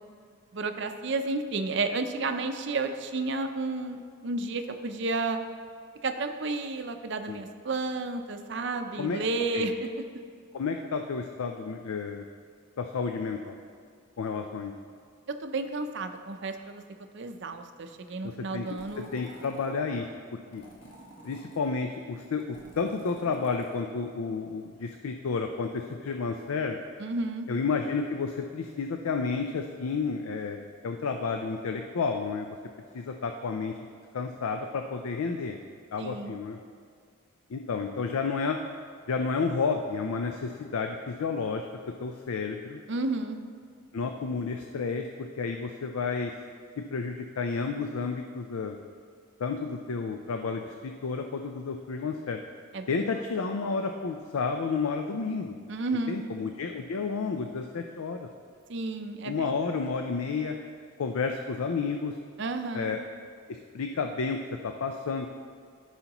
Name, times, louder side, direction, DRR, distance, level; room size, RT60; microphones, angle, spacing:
voice 1, 0.5-5.4 6.0-10.0 15.4-16.8 17.1-19.1 27.0-27.5 36.0-36.4 42.9-43.4 52.7-53.1 55.7-56.2 58.7-59.5 62.4-62.9, right 3 dB, 55° right, 7 dB, 0.5 m, -32 dB
voice 2, 10.5-12.2 12.8-13.6 14.2-14.7 18.2-18.7 19.0-20.6 21.2-26.8 27.5-30.6 30.8-32.5 32.9-33.7 34.1-35.6 35.9-36.6 37.5-38.6 39.1-41.7 42.0-42.8 43.9-46.3 46.9-48.8 49.4-52.4 52.9-55.5 56.1-58.3 59.2-60.6 61.0-62.2 62.7-63.0 63.5-65.3, left 4 dB, 85° left, 5 dB, 0.5 m, -31 dB
sound 1, 18.7-19.8 20.5-21.7 22.3-23.8, right 1 dB, 55° left, 1.5 m, -50 dB
14.0 x 5.6 x 3.0 m, 2.1 s
head